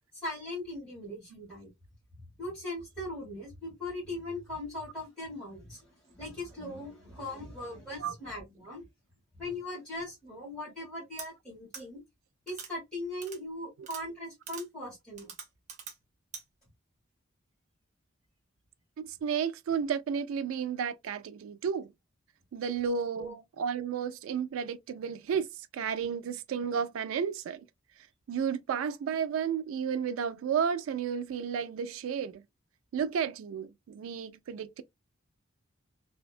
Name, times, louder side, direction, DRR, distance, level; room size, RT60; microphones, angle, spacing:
voice 1, 0.1-1.7 2.1-8.8 9.3-12.0 12.5-15.3 23.2-23.4, left 1 dB, 5° left, 1.5 m, -40 dB
sound 1, 11.2-11.3 11.7-11.8 12.5-12.7 13.2-13.4 13.8-14.0 14.5-14.7 15.2-16.0 16.3-16.4, right 6 dB, 35° right, 0.6 m, -43 dB
voice 2, 19.0-21.9 22.5-25.5 25.7-27.7 28.3-32.4 32.9-34.8, right 7 dB, 90° right, 0.3 m, -32 dB
2.7 x 2.2 x 2.4 m
head